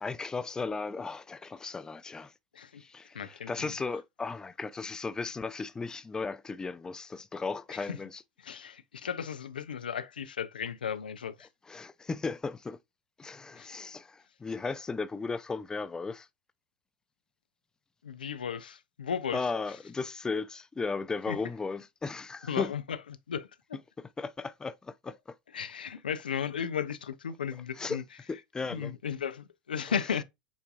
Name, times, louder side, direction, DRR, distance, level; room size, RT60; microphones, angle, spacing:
voice 1, 0.0-2.3 2.8-8.2 11.7-12.8 13.2-16.3 19.3-22.7 24.2-25.4 27.8-28.0 28.3-28.9, left 4 dB, 15° left, 0.4 m, -36 dB
voice 2, 3.1-3.7 7.7-8.0 8.4-11.5 13.5-13.7 18.0-19.5 21.3-21.4 22.5-23.0 23.3-23.8 25.5-28.0 28.7-30.2, left 7 dB, 90° left, 0.5 m, -35 dB
7.1 x 2.7 x 2.3 m
hypercardioid pair, 95°, 5 cm